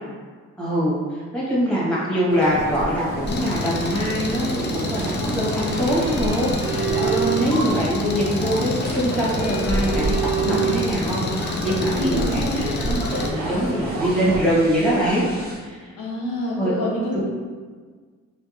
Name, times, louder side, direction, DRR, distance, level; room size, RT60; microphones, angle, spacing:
voice 1, 0.6-10.1 10.4-15.3 15.6-15.9 16.6-16.7 17.1-17.2, equal, 5° left, -7 dB, 1.4 m, -23 dB
sound 1, 2.3-14.5, right 1 dB, 75° right, 0.9 m, -30 dB
sound 2, 2.4-15.6, right 4 dB, 35° right, 1.1 m, -30 dB
Engine, 3.3-13.3, left 3 dB, 35° left, 0.5 m, -29 dB
voice 2, 11.9-12.6 16.0-17.2, left 1 dB, 85° left, -5 dB, 1.0 m, -26 dB
4.4 x 2.5 x 2.6 m, 1.5 s
cardioid pair, 90°, 30 cm